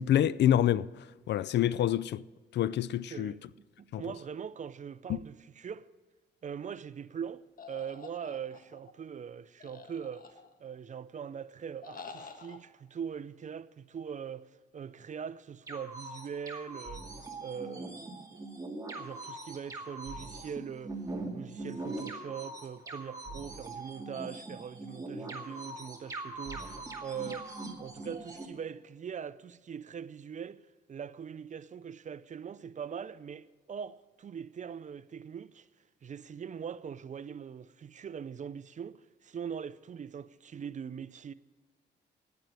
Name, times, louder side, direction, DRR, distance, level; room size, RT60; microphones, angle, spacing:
voice 1, 0.0-2.2 2.5-3.3 3.9-4.0 5.1-5.2, left 11 dB, 60° left, 0.4 m, -27 dB
voice 2, 3.1-3.5 3.8-5.9 6.4-17.1 17.4-18.4 18.9-21.0 21.3-27.5 27.8-30.6 30.9-35.7 36.0-41.3, right 7 dB, 40° right, 0.5 m, -42 dB
sound 1, 7.6-8.9 9.6-10.7 11.8-12.6, left 4 dB, 45° left, 1.4 m, -48 dB
sound 2, 15.7-28.5, right 2 dB, 15° right, 2.3 m, -42 dB
10.5 x 9.4 x 8.8 m
cardioid pair, 90°, 20 cm